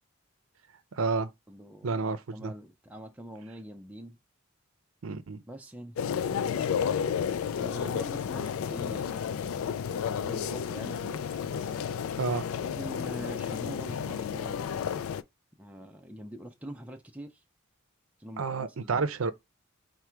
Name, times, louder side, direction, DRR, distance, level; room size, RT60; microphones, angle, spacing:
voice 1, 0.9-1.3 1.8-2.5 5.0-5.4 12.2-12.4 18.4-19.3, right 4 dB, 85° right, 0.5 m, -30 dB
voice 2, 1.5-4.2 5.5-6.0 7.6-9.3 10.1-11.3 12.7-14.9 15.6-17.4 18.2-19.1, right 1 dB, 5° right, 0.4 m, -44 dB
sound 1, 6.0-15.2, left 7 dB, 90° left, 0.3 m, -32 dB
4.8 x 2.2 x 4.4 m
head